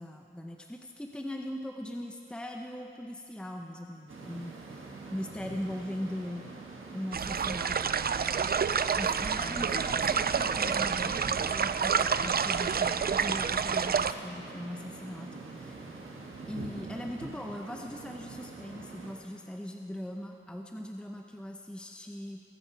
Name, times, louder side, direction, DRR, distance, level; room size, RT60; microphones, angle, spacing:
voice 1, 0.0-6.5 6.9-7.9 9.0-15.8 16.5-22.4, left 1 dB, 5° left, 2 dB, 0.8 m, -40 dB
sound 1, 4.1-19.1, right 3 dB, 80° right, 1.6 m, -44 dB
sound 2, 7.1-14.1, right 6 dB, 50° right, 0.4 m, -28 dB
21.0 x 8.9 x 4.7 m, 2.6 s
cardioid pair, 55°, 20 cm